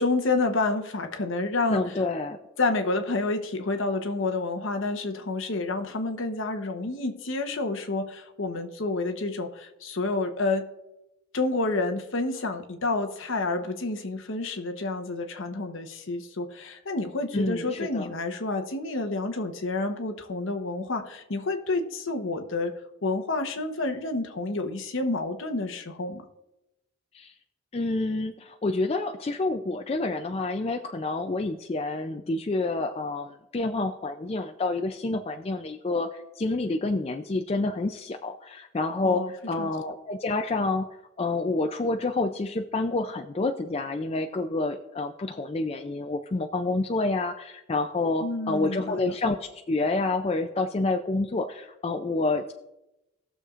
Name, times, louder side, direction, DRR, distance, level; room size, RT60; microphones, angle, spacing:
voice 1, 0.0-1.8 2.6-10.7 11.3-22.7 23.0-26.2 39.0-39.3 39.6-39.7 48.2-49.1, left 3 dB, 60° left, 6 dB, 0.9 m, -29 dB
voice 2, 1.7-2.4 17.3-18.1 27.1-27.3 27.7-40.9 41.2-52.5, left 2 dB, 30° left, 5 dB, 0.3 m, -28 dB
18.5 x 6.6 x 2.5 m, 0.94 s
head